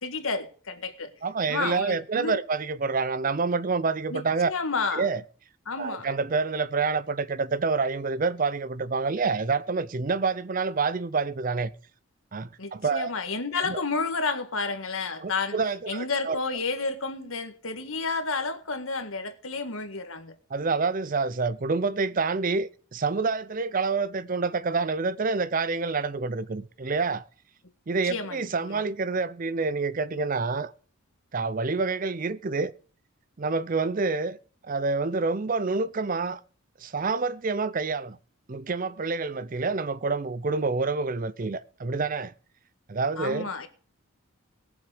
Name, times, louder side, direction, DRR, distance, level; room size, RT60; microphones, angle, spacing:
voice 1, 0.0-1.1 1.5-2.4 4.1-5.0 5.7-6.1 12.6-15.6 15.9-20.3 28.0-28.8 43.2-43.7, left 4 dB, 75° left, 1.7 m, -31 dB
voice 2, 1.2-4.5 4.9-5.2 5.8-11.7 12.3-13.1 13.6-13.8 15.2-16.4 20.5-27.3 27.9-30.7 31.3-32.7 33.4-34.4 34.6-36.4 36.8-38.2 38.5-42.3 42.9-43.5, right 4 dB, 40° right, 0.5 m, -27 dB
19.5 x 7.3 x 5.0 m
head